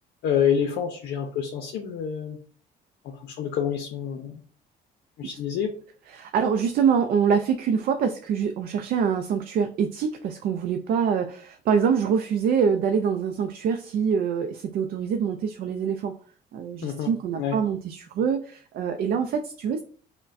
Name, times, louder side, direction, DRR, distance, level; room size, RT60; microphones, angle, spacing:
voice 1, 0.2-2.4 3.0-4.4 5.2-5.7 16.8-17.6, left 8 dB, 80° left, 4 dB, 0.6 m, -27 dB
voice 2, 6.1-16.1 16.5-19.8, right 7 dB, 60° right, 5 dB, 0.4 m, -25 dB
5.4 x 2.2 x 2.5 m, 0.43 s
cardioid pair, 110°, 17 cm